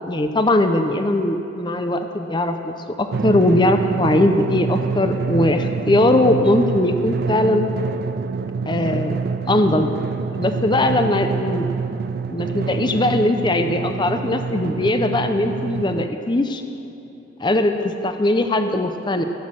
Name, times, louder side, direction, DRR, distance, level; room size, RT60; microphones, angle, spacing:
voice 1, 0.1-7.7 8.7-9.2 9.5-9.9 10.4-11.7 12.3-16.6 17.4-19.2, left 1 dB, 25° left, 7 dB, 0.6 m, -20 dB
Drum, 3.1-16.1, right 5 dB, 55° right, 0.4 m, -26 dB
16.0 x 8.4 x 7.5 m, 2.9 s
head